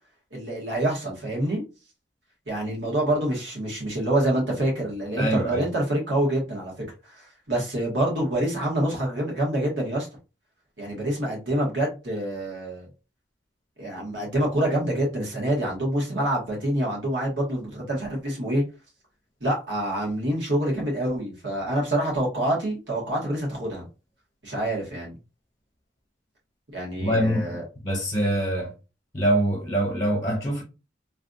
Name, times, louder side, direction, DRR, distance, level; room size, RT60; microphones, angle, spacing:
voice 1, 0.3-1.6 2.5-6.8 7.2-10.1 10.8-12.9 13.8-18.6 19.4-23.8 24.4-25.2 26.7-27.6, right 1 dB, 70° right, 1.7 m, -26 dB
voice 2, 5.2-5.6 27.0-27.5 27.8-28.7 29.1-30.6, right 1 dB, 25° left, 1.0 m, -24 dB
3.2 x 2.5 x 2.5 m
head